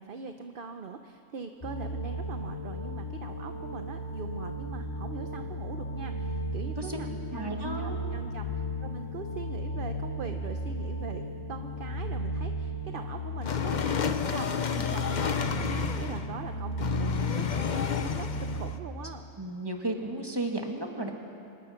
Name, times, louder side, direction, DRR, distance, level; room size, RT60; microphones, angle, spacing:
voice 1, 0.0-11.2 11.5-19.3, right 5 dB, 45° right, 6 dB, 0.8 m, -42 dB
sound 1, 1.6-18.7, equal, 25° left, 1.0 m, -35 dB
voice 2, 6.6-7.0 7.3-8.0 14.7-14.8 19.4-21.1, right 1 dB, 15° right, 2 dB, 1.9 m, -34 dB
sound 2, 13.4-16.4 16.8-18.8, left 7 dB, 40° left, 0.7 m, -30 dB
25.5 x 20.5 x 5.8 m, 2.5 s
omnidirectional pair, 1.6 m